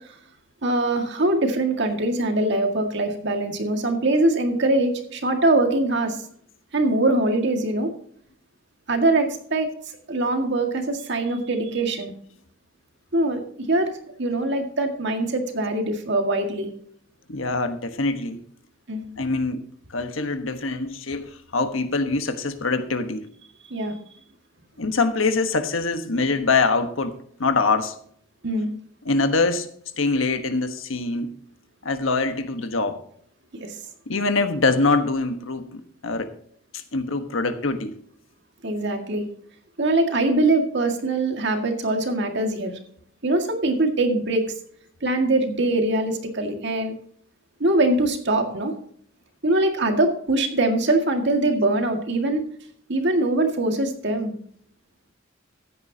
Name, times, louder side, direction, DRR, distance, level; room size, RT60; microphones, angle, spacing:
voice 1, 0.6-6.2 6.7-7.9 8.9-9.7 10.1-12.1 13.1-13.9 14.2-16.7 18.9-19.0 23.7-24.0 28.4-28.7 33.6-33.8 38.6-39.3 39.8-42.7 43.2-44.4 45.0-46.9 47.6-48.7 49.4-52.4 52.9-54.3, right 2 dB, 60° right, 2.0 m, -22 dB
voice 2, 17.3-18.4 19.2-19.6 19.9-23.3 24.8-27.1 27.4-28.0 29.0-29.7 30.0-31.3 31.8-33.0 34.1-36.3 36.7-38.0, left 3 dB, 85° left, 1.3 m, -24 dB
15.0 x 9.7 x 2.8 m
head